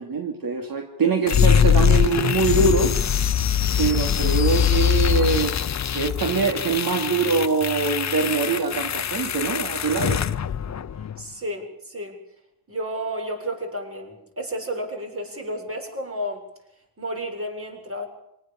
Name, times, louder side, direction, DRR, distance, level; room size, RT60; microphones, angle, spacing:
voice 1, 0.0-2.9 3.8-10.2, right 4 dB, 60° right, 3 dB, 2.8 m, -23 dB
sound 1, 1.3-11.2, left 8 dB, 45° left, 0.8 m, -22 dB
voice 2, 11.2-12.2 12.7-16.5 17.0-18.1, right 1 dB, 35° right, 3 dB, 7.5 m, -31 dB
27.0 x 19.0 x 7.2 m, 0.83 s
cardioid pair, 95°, 39 cm